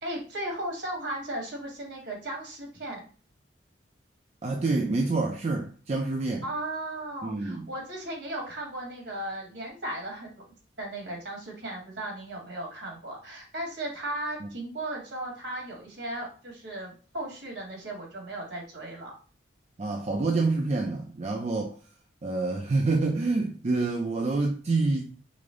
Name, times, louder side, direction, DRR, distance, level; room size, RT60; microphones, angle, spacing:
voice 1, 0.0-3.0 6.4-10.3 10.8-19.1, right 1 dB, 65° right, 1.4 m, -36 dB
voice 2, 4.4-6.4 7.2-7.7 14.4-14.5 19.8-21.8 22.2-25.2, right 3 dB, 35° right, 0.4 m, -27 dB
4.9 x 2.0 x 3.5 m
head